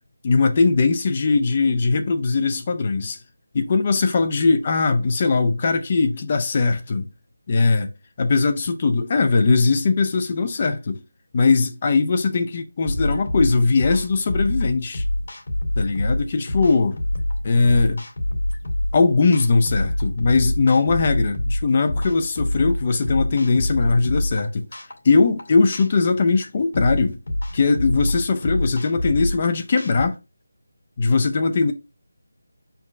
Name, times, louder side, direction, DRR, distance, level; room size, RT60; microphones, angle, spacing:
voice 1, 0.2-3.2 3.5-7.1 7.5-7.9 8.2-11.0 11.3-15.0 15.8-17.0 17.4-18.0 18.9-24.6 25.0-27.2 27.5-30.2 31.0-31.7, left 4 dB, 30° left, 0.4 m, -20 dB
sound 1, 12.9-30.1, left 1 dB, 70° left, 2.3 m, -26 dB
4.5 x 2.3 x 4.6 m
figure-of-eight pair, 175°, 0 cm